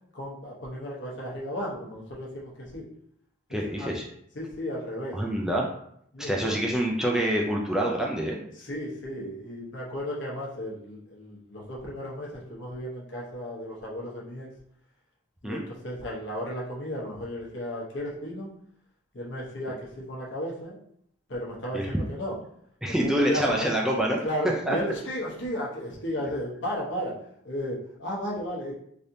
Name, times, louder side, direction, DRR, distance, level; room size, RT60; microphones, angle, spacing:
voice 1, 0.1-2.8 3.5-3.9 4.3-5.2 6.1-6.5 8.6-14.5 15.4-18.5 19.1-20.8 21.3-22.4 22.9-23.7 24.2-27.1 27.4-28.7, equal, 65° left, -4 dB, 0.9 m, -34 dB
voice 2, 3.5-4.1 5.1-5.6 6.2-8.4 15.4-15.6 21.7-21.9 22.8-24.2 24.7-24.8, right 1 dB, 5° right, -2 dB, 0.3 m, -26 dB
3.3 x 2.7 x 2.6 m, 0.71 s
head